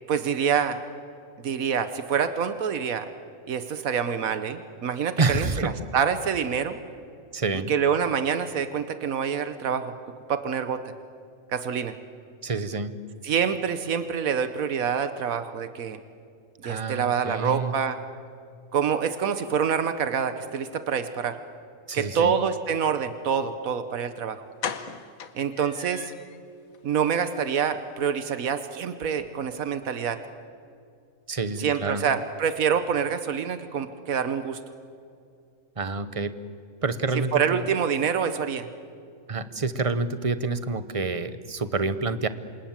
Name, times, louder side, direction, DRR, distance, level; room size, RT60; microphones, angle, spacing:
voice 1, 0.1-0.8 1.4-3.1 3.5-6.8 7.7-9.9 10.3-10.8 11.5-11.9 13.2-16.0 16.6-18.0 18.7-21.4 21.9-24.4 25.3-26.1 26.8-30.2 31.6-34.6 37.3-38.7, right 7 dB, 85° right, 10 dB, 1.4 m, -26 dB
voice 2, 5.2-5.7 7.3-7.7 12.4-12.9 16.6-17.7 21.9-22.4 31.3-32.1 35.8-36.4 36.8-37.7 39.3-42.3, right 3 dB, 30° right, 12 dB, 0.9 m, -28 dB
sound 1, 23.9-24.0 24.6-26.4 26.7-26.8 27.2-27.4 27.6-27.7, left 6 dB, 85° left, 1.6 m, -36 dB
27.5 x 27.5 x 7.4 m, 2.4 s
omnidirectional pair, 1.4 m